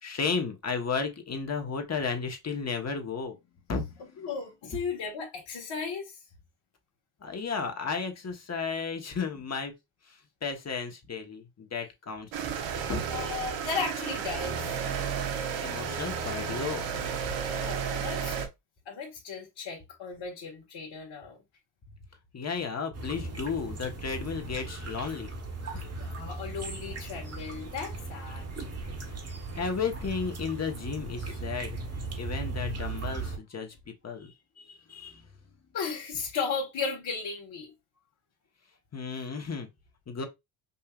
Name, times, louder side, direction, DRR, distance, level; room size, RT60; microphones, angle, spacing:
voice 1, 0.0-3.4 3.7-4.2 7.2-9.7 10.1-12.3 12.9-13.0 15.6-16.9 22.3-25.3 29.5-31.8 32.1-33.7 34.0-35.3 38.9-39.7 40.1-40.3, left 5 dB, 30° left, 1.4 m, -33 dB
voice 2, 4.0-6.2 13.1-14.7 17.5-18.4 18.8-21.4 26.0-28.5 35.7-37.7, left 5 dB, 55° left, 1.7 m, -35 dB
sound 1, 12.3-18.5, right 7 dB, 65° right, 1.1 m, -32 dB
sound 2, 22.9-33.4, right 3 dB, 30° right, 1.5 m, -37 dB
5.5 x 2.7 x 2.5 m
supercardioid pair, 75°, 50 cm